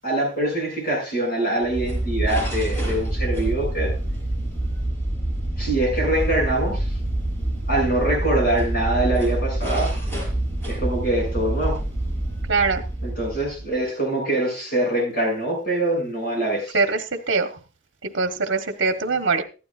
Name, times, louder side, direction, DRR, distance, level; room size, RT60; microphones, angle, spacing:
voice 1, 0.0-3.9 5.6-6.9 7.7-9.9 10.7-11.8 13.0-16.8, right 1 dB, 50° left, -1 dB, 7.3 m, -24 dB
sound 1, 1.6-13.8, right 1 dB, 15° left, 5.8 m, -26 dB
voice 2, 12.5-12.8 16.7-17.6 18.0-19.4, right 4 dB, 65° right, 6 dB, 1.2 m, -23 dB
15.0 x 12.5 x 2.5 m, 0.33 s
head